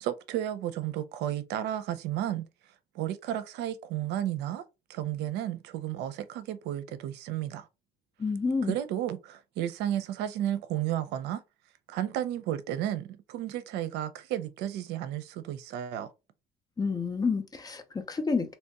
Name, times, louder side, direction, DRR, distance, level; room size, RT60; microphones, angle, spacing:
voice 1, 0.0-2.4 2.9-4.6 4.9-7.7 8.6-11.4 11.9-16.1, right 11 dB, 90° right, 0.6 m, -33 dB
voice 2, 8.2-8.8 16.8-18.5, left 4 dB, 25° left, 0.8 m, -29 dB
3.4 x 2.9 x 2.9 m
cardioid pair, 110°, 17 cm